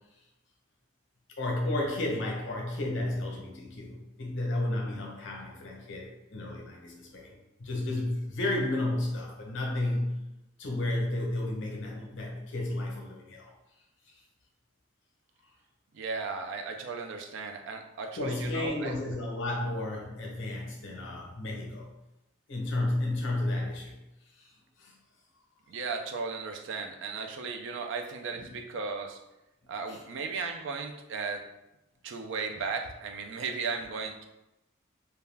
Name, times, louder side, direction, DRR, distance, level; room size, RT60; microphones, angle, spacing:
voice 1, 1.4-10.2 10.6-13.5 14.1-14.2 18.2-21.9 22.5-24.0 24.4-24.5 24.8-24.9 28.4-28.5 29.9-30.0, left 1 dB, 65° left, -1 dB, 0.7 m, -32 dB
voice 2, 15.9-18.9 25.7-29.2 29.7-31.4 32.0-34.2, right 4 dB, 60° right, 5 dB, 0.3 m, -36 dB
2.3 x 2.2 x 3.2 m, 0.92 s
head